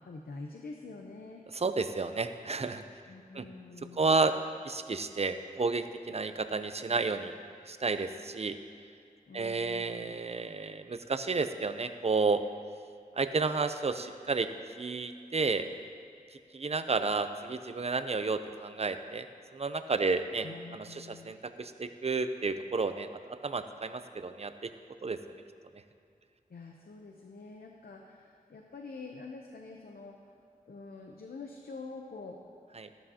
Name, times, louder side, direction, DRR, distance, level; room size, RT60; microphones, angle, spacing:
voice 1, 0.0-1.4 3.1-4.2 9.3-10.1 20.4-21.4 26.5-30.3 30.7-32.4, left 3 dB, 90° left, 1 dB, 0.7 m, -46 dB
voice 2, 1.5-2.8 3.3-3.5 3.9-4.3 4.6-7.3 7.6-8.6 9.3-12.4 13.1-14.5 14.8-15.7 16.5-19.3 19.5-20.5 20.7-24.7 25.0-25.2 32.8-32.9, right 4 dB, 45° right, 9 dB, 0.5 m, -31 dB
12.5 x 12.5 x 2.8 m, 2.4 s
wide cardioid pair, 75°, 15 cm